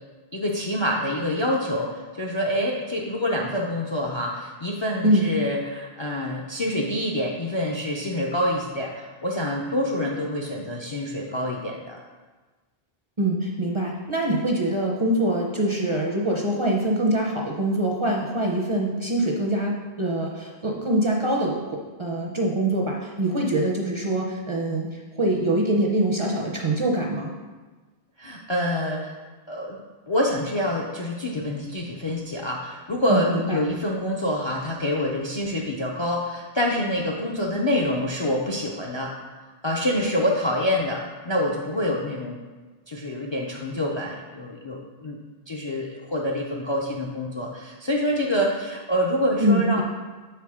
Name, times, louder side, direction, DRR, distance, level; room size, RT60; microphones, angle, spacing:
voice 1, 0.3-12.0 28.2-29.2 29.5-29.8 30.1-39.1 39.6-42.4 42.9-45.2 45.5-49.8, left 1 dB, 40° left, -1 dB, 0.4 m, -26 dB
voice 2, 13.2-27.3 33.1-33.6 49.4-49.8, right 1 dB, 35° right, -1 dB, 0.5 m, -24 dB
6.4 x 4.6 x 3.5 m, 1.3 s
omnidirectional pair, 1.1 m